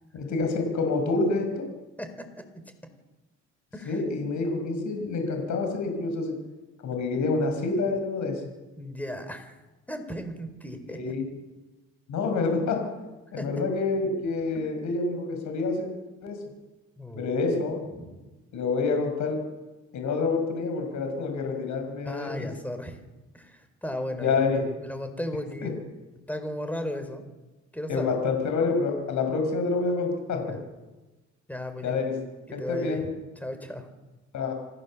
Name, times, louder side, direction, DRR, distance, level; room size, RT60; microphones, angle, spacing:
voice 1, 0.1-1.6 3.9-6.4 6.8-8.4 10.9-11.3 12.1-12.8 13.3-15.9 16.2-16.4 17.2-17.8 18.5-19.4 19.9-22.3 24.2-24.6 25.6-25.7 27.9-30.6 31.8-32.1 32.5-33.1 34.3-34.5, left 3 dB, 75° left, 4 dB, 5.3 m, -27 dB
voice 2, 8.8-9.6 9.9-11.0 13.4-13.5 17.0-17.4 17.9-18.2 22.0-23.0 23.3-24.4 24.8-25.7 26.1-27.3 27.7-28.1 30.3-30.6 31.5-32.0 32.5-33.9, left 1 dB, 5° left, 7 dB, 4.3 m, -35 dB
27.0 x 15.5 x 7.3 m, 1.1 s
cardioid pair, 90°, 30 cm